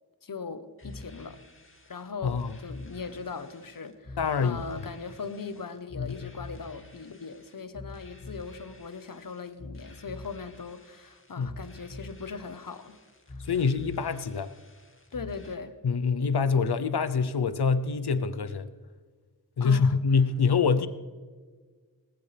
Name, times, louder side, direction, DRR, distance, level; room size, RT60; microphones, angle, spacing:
voice 1, 0.2-1.4 1.9-13.0 13.3-13.5 15.1-15.7 19.6-20.0, left 5 dB, 60° left, 1.1 m, -39 dB
sound 1, 0.8-15.5, left 2 dB, 35° left, 2.2 m, -46 dB
voice 2, 2.2-2.5 4.2-4.6 6.0-6.1 11.4-11.5 13.4-14.5 15.8-18.7 19.6-20.9, left 5 dB, 85° left, 0.8 m, -25 dB
19.0 x 16.0 x 3.4 m
wide cardioid pair, 85°, 38 cm